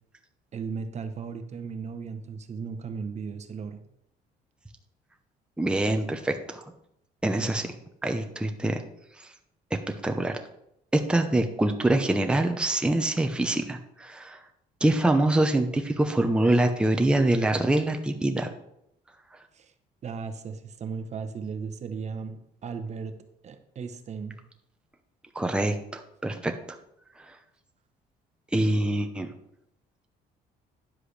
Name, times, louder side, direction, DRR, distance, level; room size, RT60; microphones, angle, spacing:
voice 1, 0.5-3.8 19.5-19.7 20.0-23.2 23.4-24.4, right 5 dB, 40° right, 8 dB, 0.9 m, -36 dB
voice 2, 5.6-6.6 7.2-7.7 8.0-8.8 9.2-9.3 10.0-10.4 10.9-14.4 14.8-18.5 25.3-26.5 27.2-27.3 28.5-29.3, right 1 dB, 5° right, 5 dB, 0.8 m, -25 dB
10.0 x 7.6 x 3.3 m, 0.78 s
cardioid pair, 110°, 17 cm